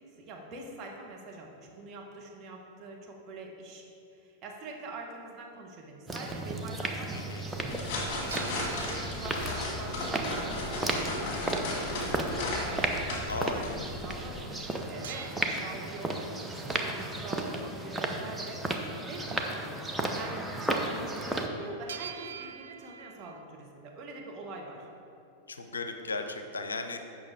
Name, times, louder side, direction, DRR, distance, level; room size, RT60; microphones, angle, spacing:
voice 1, 0.2-3.8 4.1-19.7 20.1-24.9, right 2 dB, 35° right, 0 dB, 1.4 m, -44 dB
sound 1, 6.1-21.5, right 2 dB, 5° right, 0.8 m, -34 dB
voice 2, 7.1-7.4 13.3-13.7 25.5-27.0, left 3 dB, 75° left, 6 dB, 0.6 m, -36 dB
sound 2, 7.5-14.4, left 2 dB, 40° left, 1.9 m, -36 dB
sound 3, 8.3-10.7 15.0-16.9 21.9-23.4, right 8 dB, 65° right, 0.3 m, -46 dB
8.6 x 6.0 x 4.7 m, 2.6 s
figure-of-eight pair, 90°, 0 cm